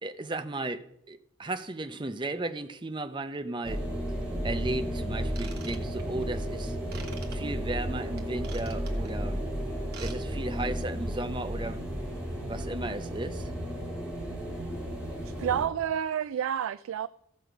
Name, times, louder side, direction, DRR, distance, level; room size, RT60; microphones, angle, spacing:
voice 1, 0.0-3.8 4.4-6.8 7.3-9.4 10.0-11.8 12.3-13.5, right 2 dB, 25° right, 9 dB, 0.6 m, -35 dB
sound 1, 3.6-15.7, equal, 5° right, 2.7 m, -33 dB
Ratchet pawl / Tools, 5.3-6.2 6.9-7.4 8.2-9.1 9.8-10.2 10.4-10.6 11.1-11.2, right 7 dB, 50° right, 1.3 m, -45 dB
voice 2, 15.2-17.1, right 9 dB, 90° right, 12 dB, 0.3 m, -29 dB
15.0 x 6.4 x 5.1 m, 0.75 s
head